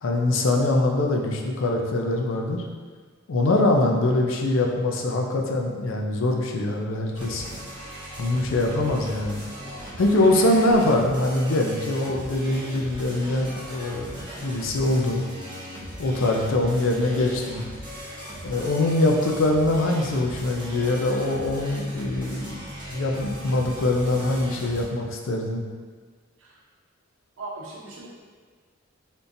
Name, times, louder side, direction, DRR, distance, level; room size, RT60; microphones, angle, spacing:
voice 1, 0.0-2.6 3.3-7.4 8.2-9.4 10.0-15.2 16.0-17.7 18.4-22.7 22.9-25.6, left 2 dB, 75° left, 1 dB, 0.4 m, -23 dB
sound 1, 7.1-24.8, equal, 25° right, 0.7 m, -38 dB
voice 2, 12.5-12.8 26.4-26.5 27.4-28.1, right 2 dB, 85° right, -4 dB, 0.7 m, -39 dB
3.6 x 2.6 x 2.7 m, 1.5 s
head